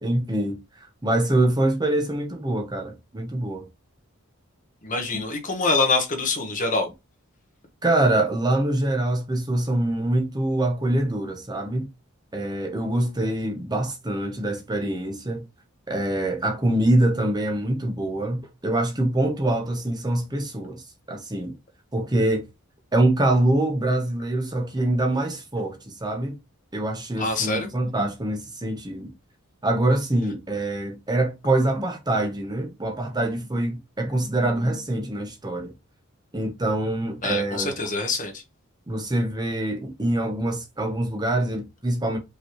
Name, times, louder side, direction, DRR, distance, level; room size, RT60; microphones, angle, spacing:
voice 1, 0.0-3.7 7.8-11.9 12.3-15.4 15.9-21.5 21.9-22.5 22.9-26.4 26.7-29.1 29.6-35.7 36.3-37.8 38.9-42.2, right 1 dB, 20° right, 0.9 m, -24 dB
voice 2, 4.8-6.9 27.2-27.7 37.2-38.4, left 3 dB, 40° left, 1.1 m, -25 dB
5.3 x 3.1 x 3.0 m
head